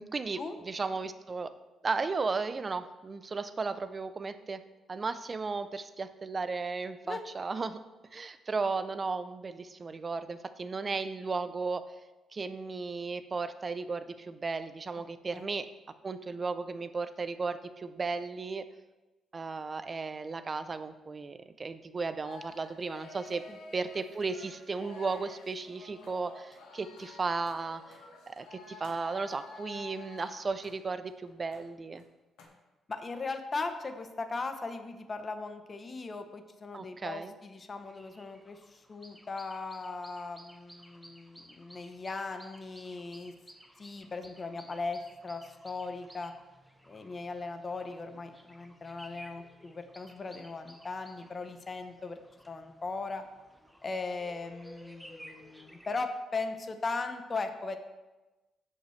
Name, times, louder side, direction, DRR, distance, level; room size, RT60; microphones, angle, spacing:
voice 1, 0.0-1.5 1.8-4.6 4.9-7.8 8.1-11.8 12.3-15.7 16.0-18.7 19.3-23.4 23.7-28.0 28.3-32.0 36.7-37.3, right 4 dB, 35° right, 11 dB, 0.6 m, -35 dB
sound 1, 22.2-31.6 31.9-32.0 32.4-32.5, left 4 dB, 90° left, 1.6 m, -50 dB
voice 2, 32.9-43.3 43.8-46.3 46.9-52.2 52.5-53.2 53.8-57.8, left 3 dB, 35° left, 7 dB, 0.9 m, -38 dB
sound 2, 37.8-56.0, equal, 5° right, 0.9 m, -55 dB
15.5 x 5.5 x 3.3 m, 1.1 s
cardioid pair, 90°, 0 cm